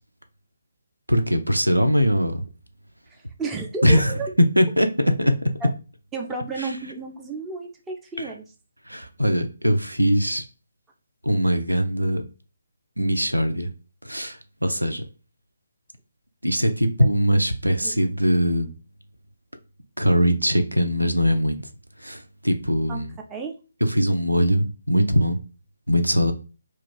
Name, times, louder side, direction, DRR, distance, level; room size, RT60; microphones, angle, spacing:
voice 1, 1.1-2.4 3.8-5.4 6.6-6.8 8.2-8.3 8.9-10.5 11.2-12.2 13.0-13.7 14.0-15.0 16.4-18.7 20.0-21.6 22.0-23.2 23.8-25.4 25.9-26.3, equal, 90° right, 0.5 m, -21 dB
voice 2, 3.4-4.3 5.6-5.7 6.1-8.4 17.8-18.1 22.9-23.0 23.3-23.5, right 3 dB, 10° right, 0.4 m, -32 dB
2.4 x 2.3 x 3.8 m
figure-of-eight pair, 145°, 0 cm